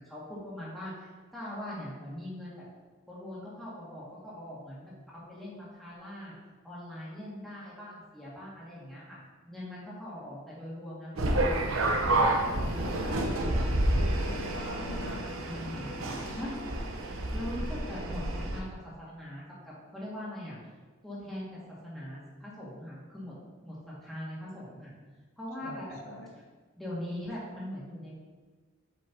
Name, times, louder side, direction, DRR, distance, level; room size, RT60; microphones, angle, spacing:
voice 1, 0.0-2.6 3.1-4.9 5.3-6.3 6.6-9.2 9.5-13.1 15.5-15.9 16.4-16.6 17.3-20.6 21.0-23.3 23.6-24.9 25.4-26.0 26.8-28.2, left 1 dB, ahead, -9 dB, 1.9 m, -41 dB
sound 1, 11.2-18.6, right 1 dB, 75° right, 0.9 m, -29 dB
voice 2, 13.8-15.2 25.6-26.3, left 1 dB, 70° left, 1 dB, 1.1 m, -43 dB
7.6 x 5.4 x 2.8 m, 1.4 s
head